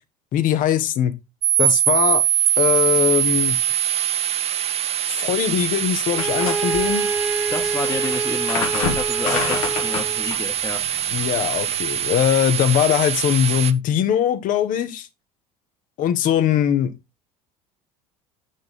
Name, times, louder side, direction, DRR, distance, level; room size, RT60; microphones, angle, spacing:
voice 1, 0.3-1.1 1.6-2.2 2.6-3.6 5.1-7.1 11.1-15.1 16.0-16.9, left 10 dB, 45° left, 1.1 m, -21 dB
sound 1, 1.4-13.7, right 10 dB, 35° right, 0.7 m, -23 dB
Bowed string instrument, 6.1-10.3, right 3 dB, 10° right, 1.5 m, -27 dB
sound 2, 6.2-12.1, left 5 dB, 65° left, 1.5 m, -30 dB
voice 2, 7.5-10.8 11.5-11.6 12.9-13.0, left 3 dB, 15° left, 1.3 m, -30 dB
8.8 x 3.8 x 3.4 m
figure-of-eight pair, 65°, 19 cm